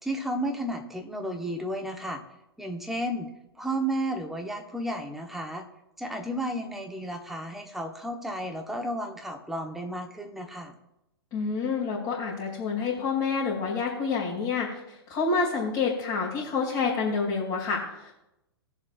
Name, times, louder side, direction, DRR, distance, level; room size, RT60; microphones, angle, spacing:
voice 1, 0.0-2.2 2.6-3.3 3.6-5.7 6.0-10.7, right 1 dB, ahead, 2 dB, 1.2 m, -32 dB
voice 2, 11.3-18.1, left 4 dB, 30° left, -7 dB, 2.7 m, -28 dB
19.5 x 7.2 x 2.5 m, 0.88 s
figure-of-eight pair, 110°, 14 cm